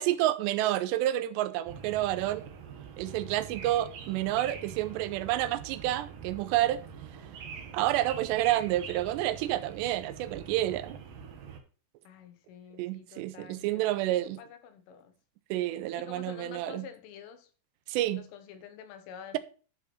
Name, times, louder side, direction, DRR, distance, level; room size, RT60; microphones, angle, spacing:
voice 1, 0.0-2.5 3.0-6.8 7.7-11.0 12.8-14.4 15.5-16.9 17.9-18.2, right 14 dB, 85° right, 2.6 m, -29 dB
sound 1, 1.7-11.6, right 6 dB, 60° right, 2.6 m, -44 dB
voice 2, 12.1-15.1 15.9-17.5 18.0-19.4, left 8 dB, 80° left, 3.7 m, -48 dB
13.0 x 5.8 x 4.3 m
omnidirectional pair, 5.6 m